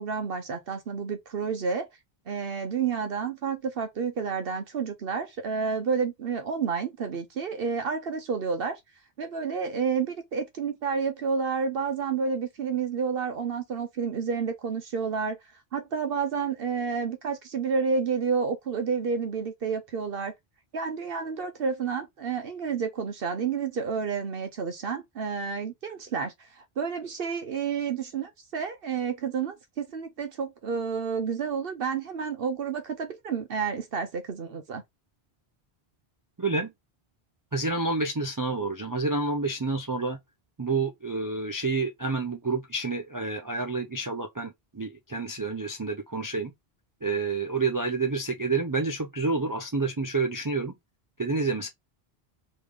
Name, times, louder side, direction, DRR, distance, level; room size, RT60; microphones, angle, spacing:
voice 1, 0.0-1.9 2.3-8.8 9.2-15.4 15.7-20.3 20.7-34.8, right 5 dB, 65° right, 0.9 m, -30 dB
voice 2, 36.4-36.7 37.5-40.2 40.6-46.5 47.0-50.7 51.2-51.7, right 3 dB, 25° right, 0.4 m, -29 dB
3.4 x 3.2 x 3.7 m
omnidirectional pair, 1.1 m